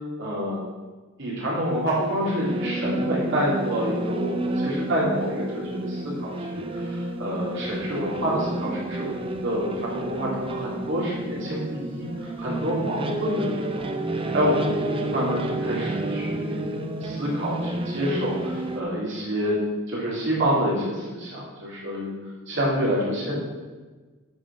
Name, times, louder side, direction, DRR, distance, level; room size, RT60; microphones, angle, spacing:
voice 1, 0.2-0.6 1.2-9.1 9.4-13.9 14.3-16.7 17.0-22.1 22.5-23.4, equal, 60° right, -5 dB, 3.3 m, -27 dB
sound 1, 1.7-18.8, right 1 dB, 25° right, 0.7 m, -30 dB
9.0 x 7.5 x 5.4 m, 1.3 s
head